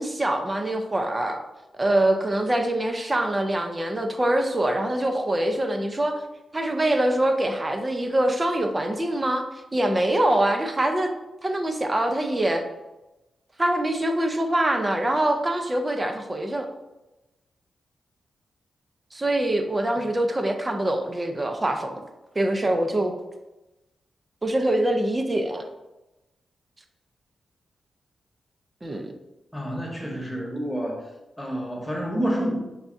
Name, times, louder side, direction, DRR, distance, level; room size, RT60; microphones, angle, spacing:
voice 1, 0.0-1.4 1.8-6.1 6.5-9.4 9.7-11.1 11.4-12.6 13.6-16.7 19.1-22.0 22.4-23.1 24.4-25.7 28.8-29.1, right 1 dB, 30° right, 5 dB, 0.6 m, -24 dB
voice 2, 29.5-31.1 31.4-32.6, equal, 5° left, -1 dB, 1.1 m, -28 dB
5.6 x 2.3 x 2.6 m, 1.0 s
supercardioid pair, 45°, 0 cm